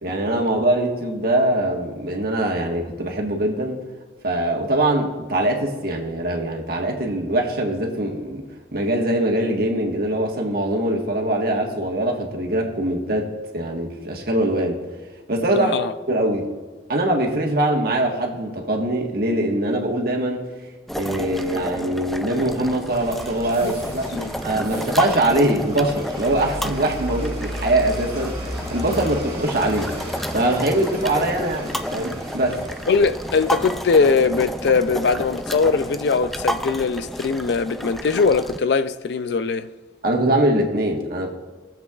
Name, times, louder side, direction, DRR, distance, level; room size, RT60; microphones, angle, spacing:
voice 1, 0.0-3.8 4.2-8.4 8.7-14.8 15.3-15.7 16.1-16.5 16.9-20.5 21.0-29.9 30.3-32.6 40.0-41.3, right 1 dB, 60° right, 1.5 m, -22 dB
voice 2, 15.5-15.9 23.6-23.7 24.1-24.3 32.9-39.7, left 4 dB, 70° left, 0.4 m, -21 dB
sound 1, 20.9-38.6, equal, ahead, 0.3 m, -31 dB
sound 2, 22.9-36.6, right 1 dB, 30° right, 2.1 m, -36 dB
20.0 x 7.4 x 2.4 m
head